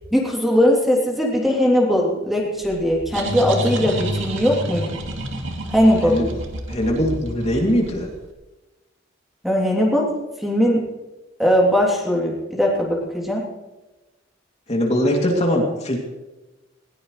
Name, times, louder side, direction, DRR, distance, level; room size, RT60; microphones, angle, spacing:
voice 1, 0.1-5.0 5.7-6.2 9.4-10.1 10.4-10.8 11.4-13.4, equal, ahead, -2 dB, 3.1 m, -19 dB
sound 1, 2.6-8.2, right 1 dB, 70° right, 2.5 m, -29 dB
voice 2, 6.0-6.3 6.7-8.1 14.7-16.0, equal, 35° left, 0 dB, 2.8 m, -21 dB
20.5 x 18.5 x 3.3 m, 1.1 s
head